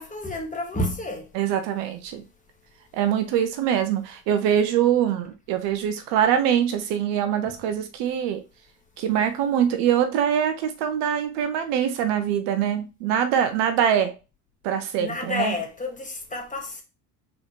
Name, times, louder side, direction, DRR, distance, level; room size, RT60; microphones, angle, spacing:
voice 1, 0.0-1.2 15.0-16.8, left 2 dB, 15° left, 1.5 m, -30 dB
voice 2, 1.3-2.2 2.9-8.4 9.0-14.2 14.6-15.6, right 9 dB, 55° right, 0.9 m, -23 dB
4.0 x 3.8 x 3.1 m
hypercardioid pair, 70°, 50 cm